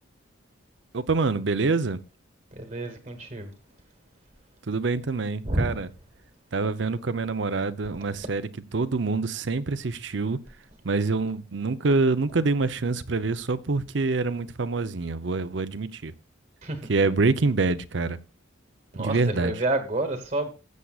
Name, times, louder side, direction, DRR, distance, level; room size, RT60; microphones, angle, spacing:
voice 1, 0.9-2.0 4.7-5.9 6.5-10.4 10.8-16.1 16.9-18.2 19.0-19.6, right 3 dB, 65° right, 0.7 m, -26 dB
voice 2, 2.5-3.5 5.4-5.8 16.6-16.9 18.9-19.1 19.4-20.5, right 2 dB, 40° right, 1.3 m, -29 dB
14.5 x 8.2 x 2.4 m
head